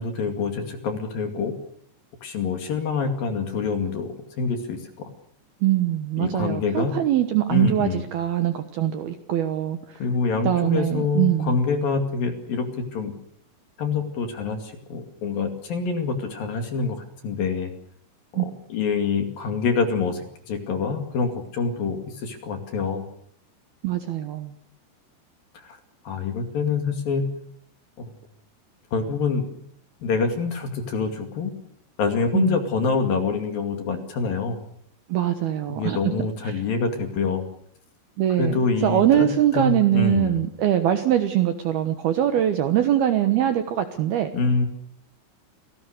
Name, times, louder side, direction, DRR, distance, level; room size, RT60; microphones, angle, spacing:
voice 1, 0.0-1.5 2.2-4.8 6.2-7.0 7.5-8.0 10.0-12.7 12.9-13.1 13.8-17.7 18.4-23.0 25.6-25.8 26.1-27.2 28.0-28.1 28.9-29.5 30.0-31.5 32.0-34.6 35.7-37.5 38.4-40.4 44.3-44.7, left 5 dB, 50° left, 6 dB, 3.6 m, -26 dB
voice 2, 5.6-10.0 10.4-11.6 18.3-18.4 23.8-24.5 32.3-32.6 35.1-36.0 36.4-36.6 38.2-44.3, right 11 dB, 70° right, 8 dB, 2.5 m, -22 dB
28.0 x 18.5 x 6.7 m, 0.67 s
omnidirectional pair, 5.8 m